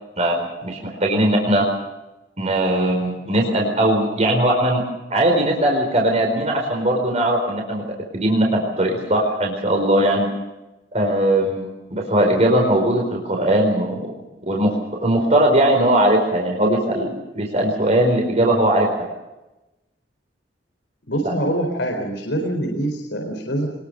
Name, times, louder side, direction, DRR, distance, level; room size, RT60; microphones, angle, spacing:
voice 1, 0.2-1.6 2.4-4.8 5.1-7.8 8.1-10.3 10.9-14.1 14.5-19.1 21.2-21.3, right 1 dB, 40° right, 0 dB, 4.4 m, -19 dB
voice 2, 21.1-23.7, right 1 dB, 80° left, 2 dB, 4.4 m, -24 dB
24.5 x 21.5 x 6.6 m, 1.0 s
head